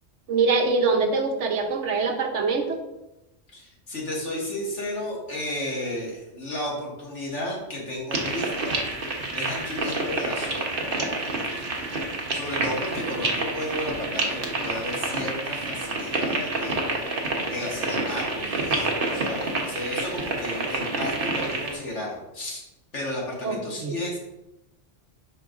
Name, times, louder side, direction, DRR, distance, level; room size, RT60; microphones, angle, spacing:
voice 1, 0.3-2.8 23.4-23.9, right 4 dB, 75° right, 4 dB, 1.2 m, -24 dB
voice 2, 3.5-8.8 9.3-10.8 11.5-11.7 12.3-17.1 17.5-22.6 22.9-24.2, left 1 dB, 75° left, -3 dB, 2.2 m, -33 dB
sound 1, 8.1-21.7, right 2 dB, 50° right, 1.2 m, -28 dB
11.0 x 4.4 x 2.5 m, 0.95 s
omnidirectional pair, 1.2 m